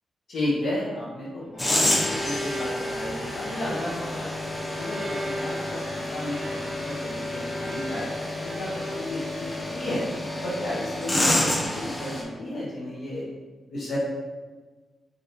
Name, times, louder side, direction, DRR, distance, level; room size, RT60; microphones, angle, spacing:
voice 1, 0.3-4.4 4.8-8.1 8.4-10.0 10.4-13.2 13.7-14.0, left 1 dB, 75° left, -9 dB, 1.1 m, -33 dB
Bowed string instrument, 1.4-9.3, equal, 50° right, 1.0 m, -37 dB
sound 1, 1.6-12.2, left 1 dB, 15° left, 0.6 m, -29 dB
5.0 x 2.7 x 2.8 m, 1.3 s
wide cardioid pair, 155°, 0 cm